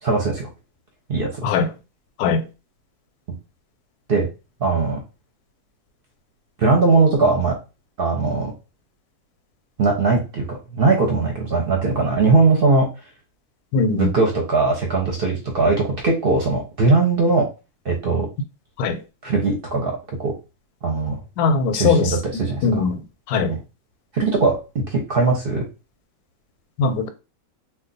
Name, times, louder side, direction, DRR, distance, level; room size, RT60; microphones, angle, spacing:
voice 1, 0.0-0.5 1.1-1.3 4.1-4.3 4.6-5.0 6.6-7.6 8.0-8.5 9.8-12.9 14.0-17.5 17.8-18.3 19.2-19.9 20.2-20.3 20.8-21.2 21.7-22.9 23.5-23.6 24.1-25.6, right 3 dB, 50° right, 0.7 m, -20 dB
voice 2, 13.7-14.1 18.8-19.0 21.4-22.1 22.6-23.0 23.3-23.5 26.8-27.1, left 4 dB, 90° left, 1.1 m, -20 dB
2.4 x 2.3 x 3.8 m
omnidirectional pair, 1.6 m